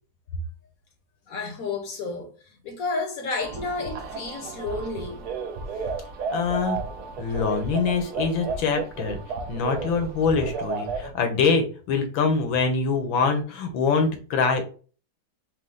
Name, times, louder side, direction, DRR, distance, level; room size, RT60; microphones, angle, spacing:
voice 1, 1.3-2.3 2.6-5.3, left 3 dB, 60° left, 1.1 m, -31 dB
sound 1, 3.4-11.1, right 4 dB, 65° right, 1.1 m, -33 dB
voice 2, 6.3-6.8 7.2-9.2 9.5-14.6, left 5 dB, 85° left, 1.7 m, -24 dB
5.5 x 2.3 x 3.7 m
omnidirectional pair, 2.1 m